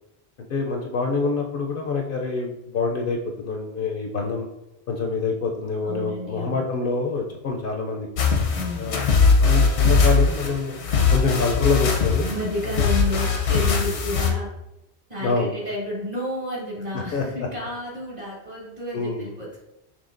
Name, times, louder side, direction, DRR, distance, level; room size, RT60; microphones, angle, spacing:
voice 1, 0.5-4.5 4.9-8.1 8.8-9.1 9.4-10.7 11.1-12.3 13.8-13.9 15.2-15.5 16.9-17.5 18.9-19.3, left 4 dB, 65° left, 1 dB, 0.7 m, -26 dB
voice 2, 5.8-6.7 8.5-9.2 12.2-14.5 15.1-19.6, left 1 dB, 40° right, -6 dB, 1.8 m, -31 dB
sound 1, 8.2-14.3, left 4 dB, 85° left, 1.0 m, -20 dB
5.5 x 3.0 x 2.5 m, 0.89 s
omnidirectional pair, 1.1 m